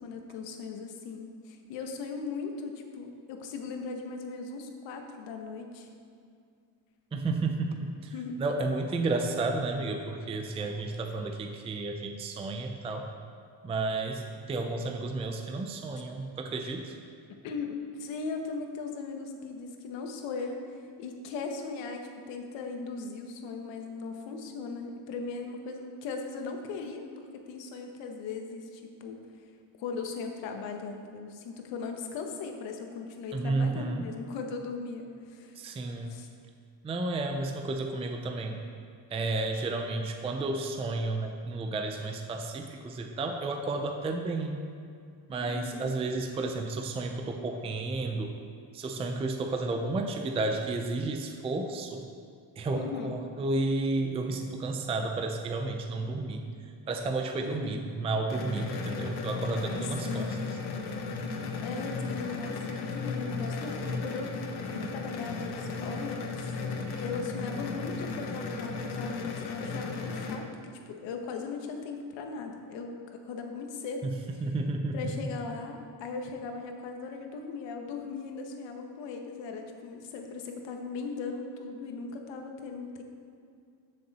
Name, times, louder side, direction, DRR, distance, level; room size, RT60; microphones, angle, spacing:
voice 1, 0.0-5.9 8.1-8.4 17.3-29.2 29.8-35.6 36.1-36.3 45.4-45.9 52.7-53.2 57.6-57.7 59.8-60.4 61.6-64.3 64.7-66.6 67.0-74.3 74.9-83.0, left 4 dB, 80° left, 4 dB, 1.3 m, -38 dB
voice 2, 7.1-8.1 8.4-13.1 13.6-17.0 33.3-34.0 35.5-36.2 36.8-38.6 39.1-44.6 45.3-48.3 48.7-52.1 52.6-60.4 74.0-74.1 74.4-75.2, right 2 dB, 15° right, 4 dB, 0.4 m, -32 dB
sound 1, 58.3-70.4, left 4 dB, 60° left, 1.2 m, -35 dB
13.5 x 6.7 x 4.2 m, 2.3 s
cardioid pair, 155°, 43 cm